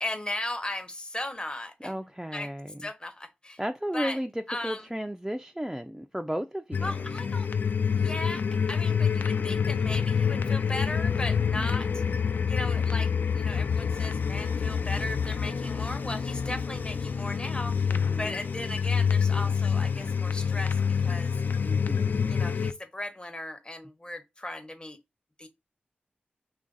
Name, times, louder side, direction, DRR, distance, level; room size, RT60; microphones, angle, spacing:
voice 1, 0.0-2.1 2.3-2.5 2.8-3.6 3.9-4.2 4.5-4.9 6.8-7.5 7.9-12.0 12.5-17.9 18.2-21.3 22.3-25.0 25.4-25.5, left 1 dB, 25° left, 0.8 m, -37 dB
voice 2, 1.8-2.8 3.6-4.3 4.6-6.9 11.6-12.0 17.9-18.4 21.6-22.3, equal, 10° right, 0.3 m, -34 dB
sound 1, 6.7-22.7, left 6 dB, 65° left, 0.4 m, -27 dB
3.2 x 2.5 x 3.8 m
cardioid pair, 55°, 3 cm